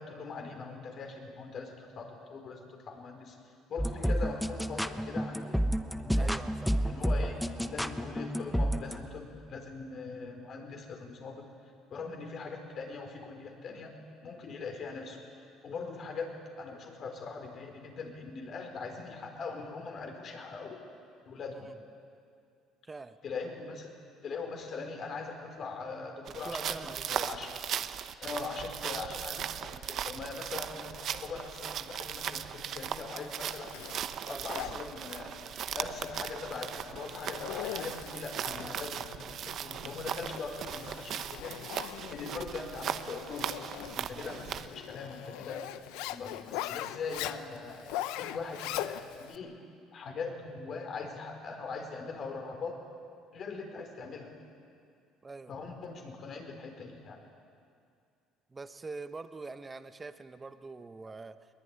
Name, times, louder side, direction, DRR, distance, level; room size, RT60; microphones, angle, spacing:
voice 1, 0.0-3.4 3.7-6.4 6.9-11.4 11.9-13.9 14.2-20.9 21.2-21.7 23.2-23.9 24.2-27.5 28.2-33.9 34.3-35.4 35.7-41.7 42.1-43.7 43.9-45.6 46.1-49.6 49.9-52.8 53.3-54.3 55.5-57.2, left 4 dB, 50° left, 3 dB, 4.7 m, -41 dB
sound 1, 3.8-9.1, equal, ahead, 1.0 m, -31 dB
voice 2, 6.2-6.8 7.1-7.2 22.8-23.2 26.4-27.0 34.2-35.1 44.2-44.4 55.2-55.5 58.5-61.5, right 3 dB, 20° right, 10 dB, 1.1 m, -44 dB
sound 2, 26.3-44.7, right 9 dB, 55° right, 0.9 m, -38 dB
Zipper (clothing), 33.2-49.4, left 13 dB, 85° left, 0.8 m, -42 dB
21.5 x 20.5 x 9.7 m, 2.4 s
cardioid pair, 105°, 0 cm